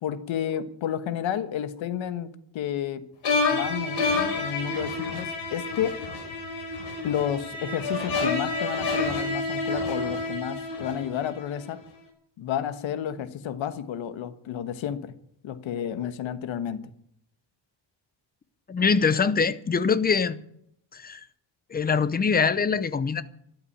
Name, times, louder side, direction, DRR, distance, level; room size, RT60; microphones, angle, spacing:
voice 1, 0.0-3.1 3.5-6.0 7.0-11.8 12.4-15.1 15.4-16.8, left 9 dB, 90° left, 1.4 m, -31 dB
sound 1, 3.2-11.4, left 3 dB, 65° left, 5.5 m, -29 dB
voice 2, 18.7-20.4 20.9-21.2 21.7-23.2, left 5 dB, 20° left, 0.6 m, -23 dB
13.5 x 12.0 x 8.6 m
cardioid pair, 170°, 45 cm